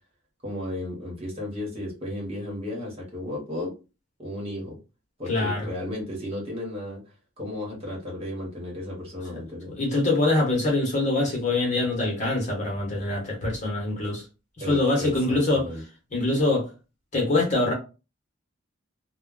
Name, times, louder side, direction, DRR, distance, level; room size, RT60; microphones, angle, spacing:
voice 1, 0.4-3.7 4.2-4.8 5.2-7.0 7.4-9.7 14.6-15.8, left 1 dB, 30° right, 1.1 m, -34 dB
voice 2, 5.3-5.7 9.7-14.2 14.6-15.7 16.1-16.7 17.1-17.7, left 2 dB, 40° left, 1.1 m, -24 dB
2.2 x 2.2 x 3.7 m
head